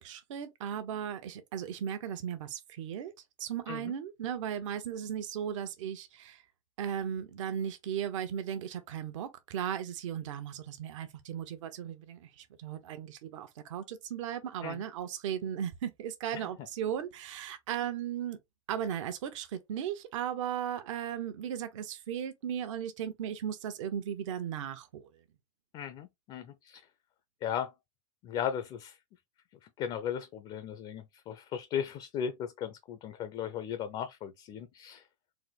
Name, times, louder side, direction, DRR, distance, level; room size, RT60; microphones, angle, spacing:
voice 1, 0.0-3.1 3.4-6.4 6.8-18.4 18.7-25.2, right 9 dB, 65° right, 1.1 m, -36 dB
voice 2, 25.7-26.8 27.4-27.7 28.2-29.0 29.8-35.0, left 8 dB, 30° left, 0.6 m, -36 dB
4.2 x 2.1 x 4.0 m
supercardioid pair, 135°, 17 cm